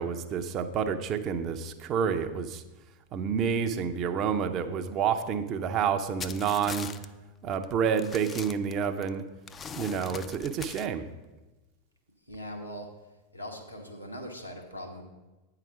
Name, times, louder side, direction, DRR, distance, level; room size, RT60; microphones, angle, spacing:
voice 1, 0.0-2.6 3.1-6.9 7.4-9.2 9.7-11.0, right 7 dB, 35° right, 7 dB, 0.6 m, -29 dB
sound 1, 6.2-7.1 7.5-7.6 8.0-9.1 9.5-10.9, left 6 dB, 20° left, 0.4 m, -40 dB
voice 2, 12.3-12.9 13.3-15.0, equal, 90° left, 0 dB, 1.3 m, -40 dB
9.1 x 4.9 x 5.9 m, 1.1 s
figure-of-eight pair, 90°, 0 cm